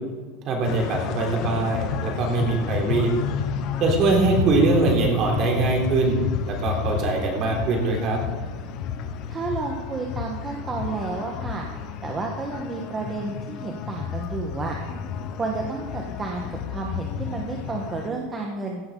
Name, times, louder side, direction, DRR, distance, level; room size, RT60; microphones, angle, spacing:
voice 1, 0.5-3.1 3.8-6.2 6.5-8.2, right 3 dB, 35° right, 0 dB, 3.6 m, -22 dB
sound 1, 0.6-18.1, left 7 dB, 40° left, 1.0 m, -30 dB
voice 2, 9.3-11.7 12.0-14.8 15.4-18.8, right 3 dB, 15° right, 0 dB, 1.4 m, -31 dB
16.0 x 12.0 x 3.9 m, 1.4 s
supercardioid pair, 160°, 0 cm